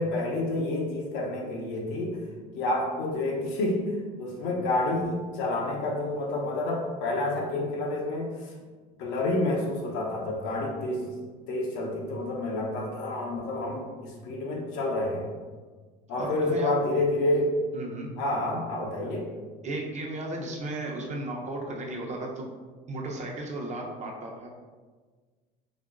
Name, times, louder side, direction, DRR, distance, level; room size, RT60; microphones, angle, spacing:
voice 1, 0.0-2.2 2.5-3.9 4.2-8.5 9.0-11.1 11.5-15.3 16.1-17.5 18.2-19.3, left 2 dB, 75° left, -1 dB, 0.9 m, -29 dB
voice 2, 16.2-16.7 17.7-18.1 19.6-22.5 22.9-24.5, right 2 dB, 35° right, -1 dB, 0.8 m, -35 dB
4.3 x 2.9 x 2.5 m, 1.4 s
supercardioid pair, 100°, 20 cm